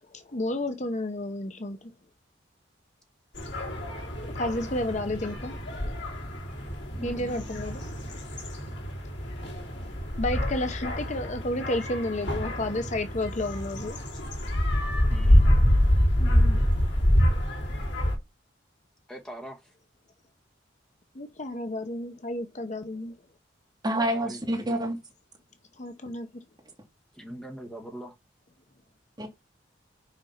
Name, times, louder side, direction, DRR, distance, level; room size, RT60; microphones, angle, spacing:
voice 1, 0.1-1.9 4.2-5.9 7.0-7.8 10.2-14.0 16.2-16.7 21.1-23.1 25.8-26.4, left 1 dB, 40° left, 0.8 m, -32 dB
sound 1, 3.3-18.2, equal, 70° left, 3.6 m, -26 dB
voice 2, 6.9-7.6 15.1-15.6 19.1-19.7 24.2-24.8 27.1-28.1, equal, 5° left, 1.8 m, -42 dB
voice 3, 23.8-25.0 29.2-29.3, right 1 dB, 20° right, 2.9 m, -27 dB
6.5 x 5.2 x 5.7 m
head